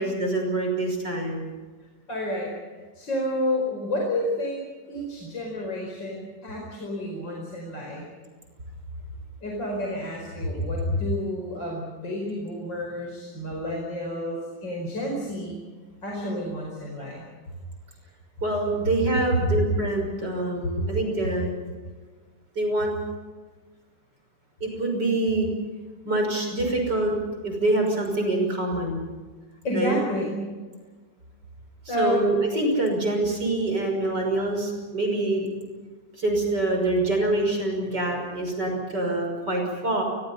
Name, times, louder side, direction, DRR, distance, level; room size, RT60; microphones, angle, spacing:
voice 1, 0.0-1.5 18.4-21.5 22.6-22.9 24.6-25.5 26.0-27.1 27.4-29.0 29.7-30.0 31.9-35.5 36.2-40.0, right 2 dB, 20° right, 2 dB, 6.1 m, -25 dB
voice 2, 2.1-2.5 3.0-4.6 4.9-8.1 9.4-15.6 16.0-17.3 20.8-20.9 29.6-30.5 31.9-32.2, left 1 dB, 25° left, -1 dB, 5.1 m, -29 dB
28.5 x 23.0 x 5.7 m, 1.4 s
omnidirectional pair, 5.2 m